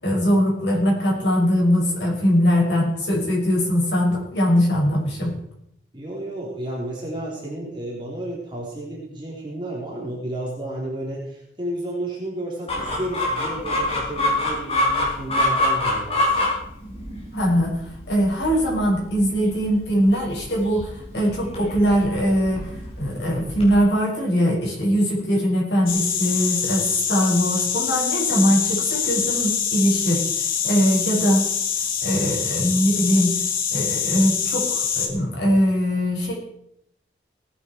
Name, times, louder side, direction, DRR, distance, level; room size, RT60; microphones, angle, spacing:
voice 1, 0.0-5.3 17.3-22.7 23.0-30.3 30.6-31.5 32.0-33.3 33.7-36.3, equal, 70° left, -3 dB, 6.1 m, -21 dB
voice 2, 5.9-16.5, right 1 dB, 25° right, -3 dB, 3.6 m, -32 dB
Chicken rooster, 12.7-23.8, left 1 dB, 35° left, 4.9 m, -26 dB
sound 1, 25.9-35.1, left 7 dB, 50° left, 2.1 m, -25 dB
18.5 x 9.8 x 4.6 m, 0.75 s
head